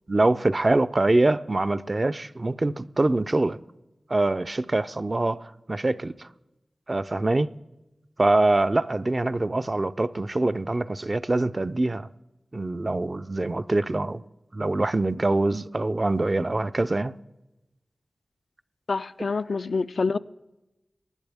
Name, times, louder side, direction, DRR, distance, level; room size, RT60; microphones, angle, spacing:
voice 1, 0.1-3.6 4.1-6.3 6.9-7.5 8.2-12.1 12.5-14.2 14.5-17.1, right 2 dB, 40° right, 0.4 m, -24 dB
voice 2, 18.9-20.2, left 4 dB, 75° left, 0.3 m, -26 dB
19.0 x 11.5 x 3.5 m
wide cardioid pair, 55°, 0 cm